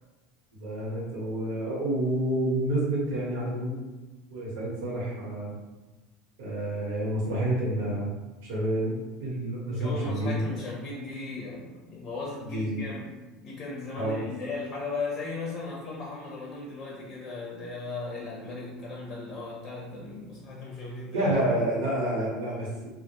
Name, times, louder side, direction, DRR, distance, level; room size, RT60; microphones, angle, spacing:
voice 1, 0.6-3.9 4.3-5.5 6.4-8.1 8.4-10.4 12.4-12.8 14.0-14.2 21.1-22.9, right 1 dB, 80° right, -6 dB, 1.1 m, -29 dB
voice 2, 9.7-13.2 13.4-21.3, left 3 dB, 40° left, -3 dB, 0.6 m, -37 dB
2.1 x 2.1 x 2.9 m, 1.2 s
supercardioid pair, 100°, 0 cm